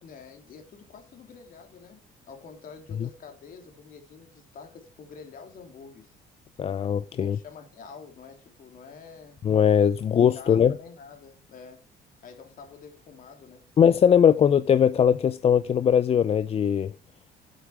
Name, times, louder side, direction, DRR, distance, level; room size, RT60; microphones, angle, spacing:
voice 1, 0.0-6.2 7.2-9.4 10.0-11.8 12.2-13.7, left 5 dB, 55° left, 3.3 m, -47 dB
voice 2, 6.6-7.4 9.4-10.7 13.8-16.9, left 8 dB, 35° left, 0.5 m, -20 dB
8.9 x 8.1 x 5.0 m
cardioid pair, 110°, 17 cm